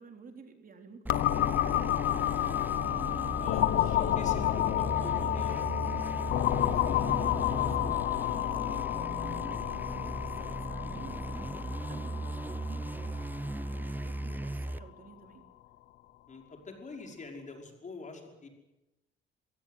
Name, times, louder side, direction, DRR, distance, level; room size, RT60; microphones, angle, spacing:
voice 1, 0.0-2.6 3.1-4.8 5.2-5.7 6.1-13.2 13.5-15.5, right 5 dB, 45° right, 5 dB, 3.7 m, -52 dB
sound 1, 1.1-14.6, left 13 dB, 85° left, 1.1 m, -30 dB
sound 2, 1.1-14.8, right 2 dB, 10° right, 0.8 m, -38 dB
sound 3, 2.3-5.3, right 4 dB, 65° right, 6.7 m, -60 dB
voice 2, 3.4-5.6 16.3-18.5, left 3 dB, 40° left, 3 dB, 5.5 m, -45 dB
22.0 x 17.0 x 9.4 m, 0.97 s
cardioid pair, 90°, 20 cm